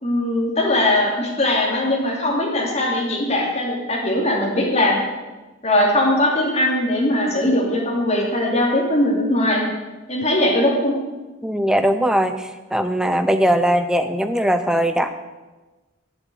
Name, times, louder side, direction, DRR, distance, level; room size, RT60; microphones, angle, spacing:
voice 1, 0.0-5.0 5.6-9.6 10.1-10.9, left 1 dB, 35° left, -2 dB, 2.9 m, -20 dB
voice 2, 11.4-15.1, equal, 5° right, 8 dB, 0.6 m, -20 dB
8.6 x 8.1 x 8.0 m, 1.2 s
head